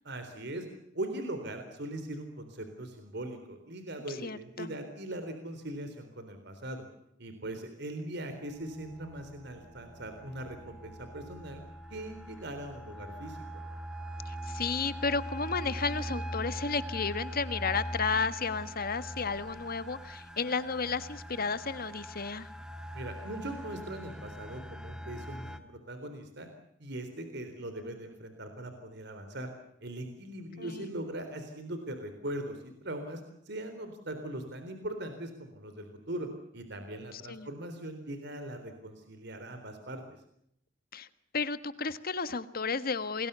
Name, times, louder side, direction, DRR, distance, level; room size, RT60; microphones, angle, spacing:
voice 1, 0.0-0.7 0.9-6.8 7.2-11.6 11.9-13.4 22.9-26.5 26.8-29.5 29.8-33.2 33.5-36.3 36.5-40.0, right 1 dB, 65° right, 7 dB, 3.8 m, -40 dB
voice 2, 4.1-4.8 14.2-22.5 30.6-30.9 37.1-37.5 40.9-41.1 41.3-43.3, left 4 dB, 50° left, 12 dB, 1.6 m, -33 dB
sound 1, 8.5-25.6, equal, 5° right, 1.8 m, -42 dB
28.0 x 21.5 x 6.9 m, 0.73 s
head